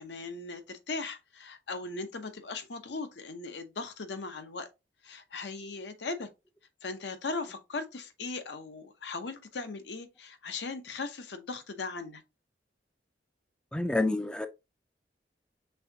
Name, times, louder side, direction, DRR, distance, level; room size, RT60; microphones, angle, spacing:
voice 1, 0.0-4.7 5.0-6.3 6.8-12.2, left 3 dB, 75° left, 0.8 m, -38 dB
voice 2, 13.7-14.5, left 2 dB, 5° left, 0.3 m, -28 dB
5.5 x 3.5 x 2.7 m
head